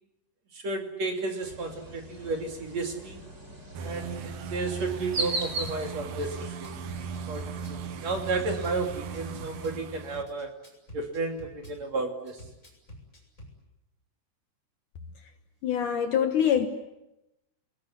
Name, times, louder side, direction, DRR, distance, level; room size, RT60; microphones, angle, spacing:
voice 1, 0.5-3.2 3.8-6.9 7.3-10.5 10.9-12.4, right 3 dB, 45° right, 3.4 m, -33 dB
sound 1, 1.4-9.8, right 2 dB, 20° right, 2.9 m, -39 dB
sound 2, 3.7-10.2, right 6 dB, 65° right, 2.3 m, -38 dB
Drum kit / Bass drum, 5.6-5.8 6.1-7.8 8.1-9.8 10.1-11.8 12.3-13.5, equal, 20° left, 7.1 m, -47 dB
voice 2, 15.6-16.7, left 9 dB, 60° left, 2.4 m, -24 dB
29.0 x 20.0 x 9.7 m
omnidirectional pair, 4.7 m